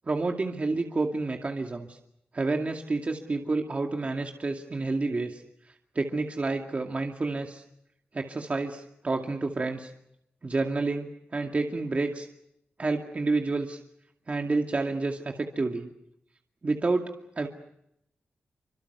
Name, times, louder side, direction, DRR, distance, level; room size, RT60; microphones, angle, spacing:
voice 1, 0.1-2.0 2.3-5.4 6.0-7.6 8.1-9.9 10.4-12.3 12.8-13.8 14.3-15.9 16.6-17.1 17.4-17.5, right 3 dB, 35° right, 2 dB, 2.4 m, -29 dB
28.0 x 26.0 x 6.8 m, 0.78 s
wide cardioid pair, 100°, 4 cm